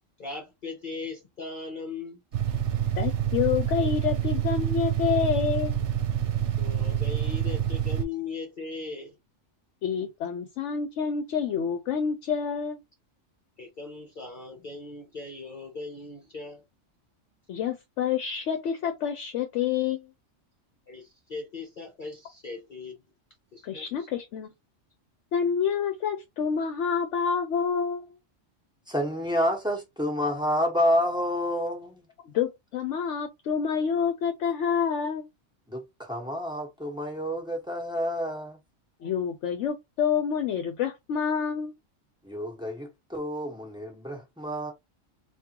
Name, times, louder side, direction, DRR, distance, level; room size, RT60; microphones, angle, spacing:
voice 1, 0.2-2.2 6.5-9.2 13.6-16.7 20.9-23.0 23.5-24.1, left 4 dB, 45° left, 0.8 m, -39 dB
sound 1, 2.3-8.0, right 10 dB, 65° right, 0.9 m, -27 dB
voice 2, 2.9-5.8 9.8-12.8 17.5-20.1 23.6-24.5 25.3-28.1 32.2-35.3 39.0-41.7, left 7 dB, 75° left, 0.9 m, -28 dB
voice 3, 28.9-32.1 35.7-38.6 42.2-44.7, equal, 5° right, 1.1 m, -29 dB
3.7 x 2.5 x 2.9 m
omnidirectional pair, 1.3 m